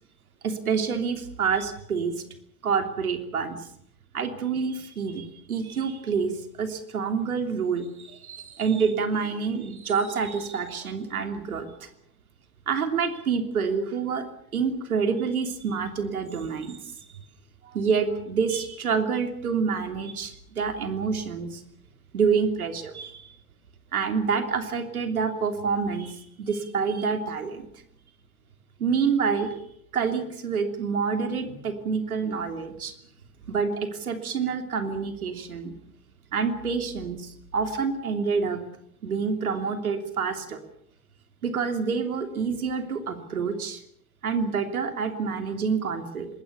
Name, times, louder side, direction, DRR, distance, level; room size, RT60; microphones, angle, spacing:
voice 1, 0.4-2.1 2.6-3.6 4.1-11.9 12.7-14.2 14.5-16.8 17.6-21.6 22.1-23.3 23.9-27.7 28.8-29.5 29.9-32.9 33.5-35.7 36.3-38.6 39.0-40.6 41.4-43.8 44.2-46.3, right 5 dB, 85° right, 7 dB, 3.2 m, -27 dB
26.5 x 21.0 x 6.9 m, 0.69 s
hypercardioid pair, 70°, 42 cm